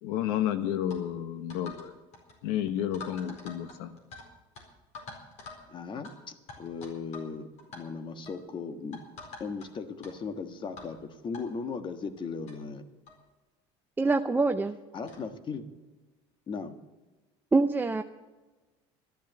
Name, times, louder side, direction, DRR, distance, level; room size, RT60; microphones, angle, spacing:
voice 1, 0.0-1.9 2.4-4.0, left 10 dB, 90° left, 10 dB, 1.1 m, -31 dB
sound 1, 0.9-1.0 1.5-1.9 2.1-2.4 2.9-4.3 4.5-4.6 4.9-5.6 6.0-6.1 6.5-7.3 7.6-7.8 8.3-8.4 8.9-9.7 10.0-10.1 10.8-10.9 11.3-11.4 12.2-12.3 12.5-12.6 13.1-13.2 14.1-14.2 15.1-15.3, left 4 dB, 60° left, 4.3 m, -45 dB
voice 2, 5.7-7.5 7.7-9.0 9.4-12.8 14.9-15.7 16.5-16.8, left 5 dB, 35° left, 10 dB, 1.5 m, -37 dB
voice 3, 14.0-14.8 17.5-18.0, right 3 dB, 15° right, 6 dB, 0.5 m, -25 dB
13.0 x 11.0 x 7.7 m, 1.2 s
supercardioid pair, 105°, 14 cm